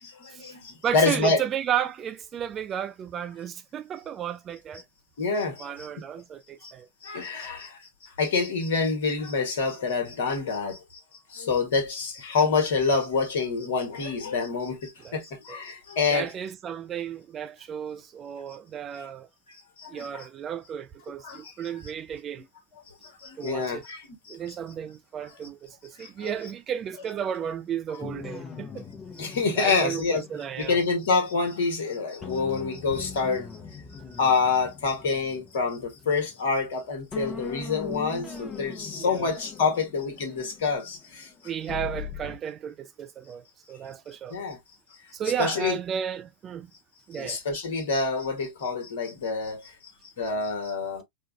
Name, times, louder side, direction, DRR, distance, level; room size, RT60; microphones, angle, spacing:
voice 1, 0.0-1.4 5.2-5.7 6.6-6.7 7.0-11.0 11.3-16.3 19.8-20.3 21.2-21.5 23.0-24.4 26.0-26.3 29.2-30.2 30.6-33.5 34.2-41.3 44.3-44.6 45.4-45.8 47.1-49.7 50.2-51.0, left 4 dB, 55° left, 1.3 m, -27 dB
voice 2, 0.8-4.8 5.6-6.9 15.0-15.2 15.5-15.6 16.1-19.3 19.9-22.4 23.4-23.8 24.3-28.8 29.6-30.8 34.1-34.2 39.0-39.3 41.4-44.4 45.1-46.7 47.1-47.4, right 9 dB, 25° right, 0.3 m, -33 dB
sound 1, 28.0-31.8 32.2-36.7 37.1-42.4, left 5 dB, 20° left, 0.9 m, -41 dB
4.5 x 2.3 x 2.3 m
figure-of-eight pair, 90°, 0 cm